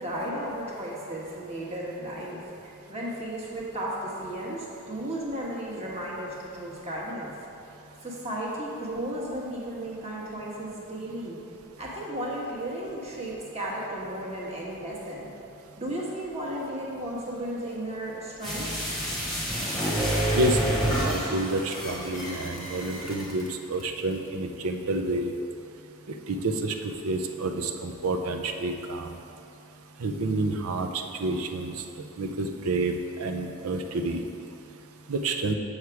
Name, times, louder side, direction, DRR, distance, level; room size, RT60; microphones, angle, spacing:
voice 1, 0.0-2.4 2.9-7.3 8.0-11.4 11.8-15.3 15.8-18.7, right 1 dB, 30° right, -4 dB, 1.3 m, -34 dB
sound 1, 18.4-23.5 23.8-23.9, right 1 dB, ahead, 1.2 m, -28 dB
voice 2, 20.3-25.3 26.3-26.7 27.0-29.1 30.0-31.7 32.2-32.9 33.2-34.2 35.1-35.5, right 2 dB, 75° right, 6 dB, 0.6 m, -29 dB
7.1 x 6.5 x 4.7 m, 2.8 s
head